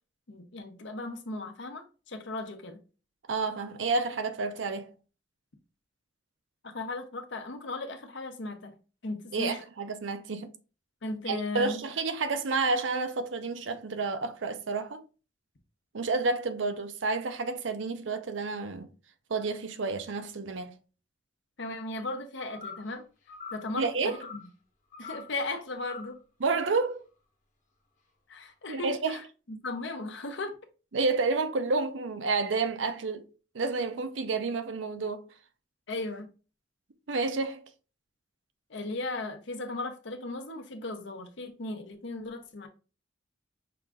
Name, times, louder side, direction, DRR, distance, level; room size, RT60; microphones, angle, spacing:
voice 1, 0.3-2.8 6.6-8.7 9.0-9.6 11.0-11.8 21.6-23.0 23.5-24.4 25.0-26.2 28.3-30.5 35.9-36.3 38.7-42.7, left 2 dB, 70° left, 0.9 m, -37 dB
voice 2, 3.3-4.9 9.3-10.5 11.3-15.0 15.9-18.9 19.3-20.8 23.8-24.2 26.4-27.0 28.7-29.2 30.9-33.2 33.5-35.2 37.1-37.7, right 3 dB, 80° right, 0.6 m, -30 dB
sound 1, 22.5-22.9 23.3-23.7 24.1-24.5 24.9-25.3 25.8-26.2, left 5 dB, 45° left, 1.2 m, -44 dB
5.8 x 2.5 x 3.5 m
head